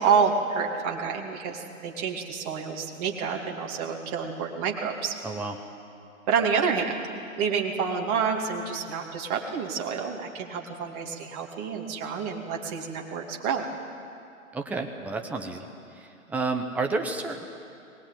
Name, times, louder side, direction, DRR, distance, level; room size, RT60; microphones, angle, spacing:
voice 1, 0.0-5.1 6.3-7.0 7.4-13.7, right 6 dB, 25° right, 0 dB, 2.6 m, -28 dB
voice 2, 5.2-5.6 14.5-15.7 16.3-17.5, right 3 dB, 5° right, 3 dB, 0.9 m, -30 dB
22.5 x 19.5 x 9.2 m, 2.5 s
figure-of-eight pair, 135°, 42 cm